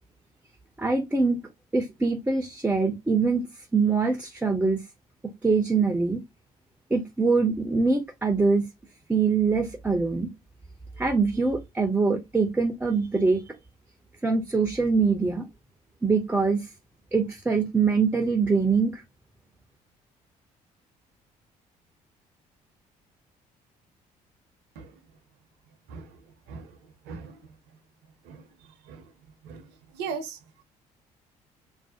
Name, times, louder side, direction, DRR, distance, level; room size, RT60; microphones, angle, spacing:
voice 1, 0.8-1.4 1.7-3.5 3.7-4.8 5.4-6.2 6.9-8.7 9.1-10.3 11.0-13.5 14.2-15.4 16.0-16.7 17.1-19.0, right 4 dB, 10° right, 0.4 m, -23 dB
voice 2, 27.1-27.4 28.3-28.4 28.9-29.0 29.4-29.6 29.9-30.6, right 5 dB, 60° right, 0.6 m, -37 dB
2.4 x 2.0 x 2.6 m
figure-of-eight pair, 50°, 20 cm